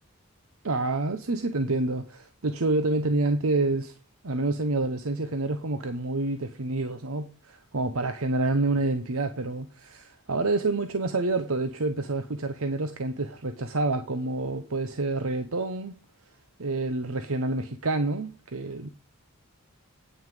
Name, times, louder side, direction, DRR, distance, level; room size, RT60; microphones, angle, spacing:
voice 1, 0.6-4.0 4.2-16.0 16.6-18.9, right 2 dB, 75° right, 0.9 m, -28 dB
9.5 x 6.3 x 5.3 m
head